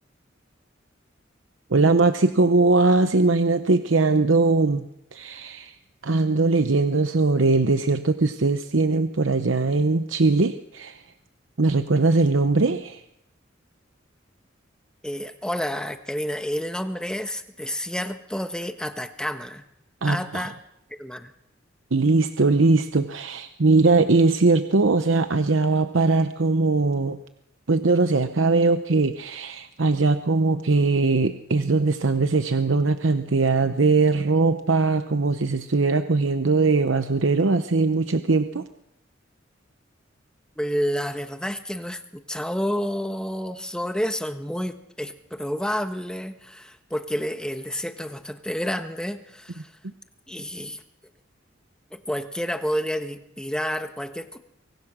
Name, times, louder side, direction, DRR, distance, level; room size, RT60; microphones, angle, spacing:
voice 1, 1.7-5.7 6.0-11.0 11.6-13.0 20.0-20.4 21.9-27.2 27.7-38.6, right 3 dB, 80° right, 9 dB, 0.9 m, -21 dB
voice 2, 15.0-19.6 20.0-20.5 21.0-21.3 40.6-49.7 50.3-50.8 51.9-54.4, equal, 5° left, 7 dB, 1.3 m, -29 dB
24.5 x 19.0 x 6.2 m, 0.84 s
head